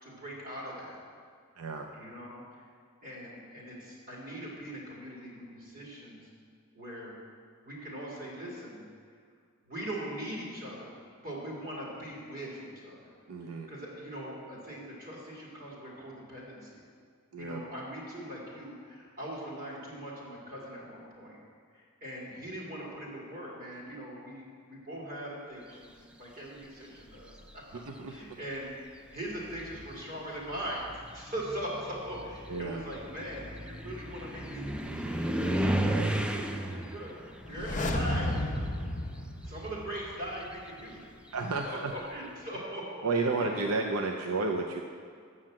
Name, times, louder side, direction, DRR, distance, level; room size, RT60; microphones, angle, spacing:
voice 1, 0.0-1.0 1.9-2.7 3.0-6.3 6.7-7.2 7.6-8.8 9.7-11.0 11.2-13.1 13.5-16.8 17.4-21.4 21.7-27.6 28.1-30.9 31.1-37.1 37.5-38.4 39.4-41.1 41.6-43.7, right 1 dB, 45° right, -5 dB, 2.7 m, -41 dB
voice 2, 1.6-1.9 13.3-13.7 17.3-17.6 27.7-28.4 32.5-32.8 35.7-36.1 41.3-41.9 43.0-44.8, right 3 dB, 85° right, 3 dB, 0.6 m, -32 dB
sound 1, 27.0-27.5 28.5-28.6 29.2-39.1 39.4-42.0, right 1 dB, 5° right, 0.4 m, -35 dB
sound 2, 37.4-40.3 40.6-40.7, left 1 dB, 35° left, 0.8 m, -33 dB
7.4 x 6.4 x 7.5 m, 2.1 s
head